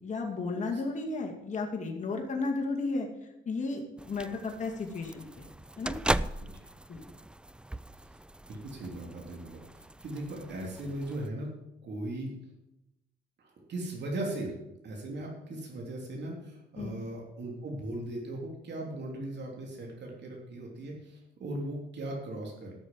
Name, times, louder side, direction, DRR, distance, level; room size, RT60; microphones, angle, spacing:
voice 1, 0.0-3.1 3.5-5.4 5.8-5.9 6.9-7.0 16.8-16.9, left 3 dB, 35° left, 0 dB, 2.3 m, -33 dB
sound 1, 4.0-11.3, right 1 dB, 5° right, 0.3 m, -38 dB
voice 2, 8.5-11.5 11.8-12.3 13.4-14.5 14.8-22.7, right 1 dB, 60° right, 0 dB, 3.2 m, -38 dB
13.0 x 6.6 x 7.4 m, 0.93 s
cardioid pair, 90°, 20 cm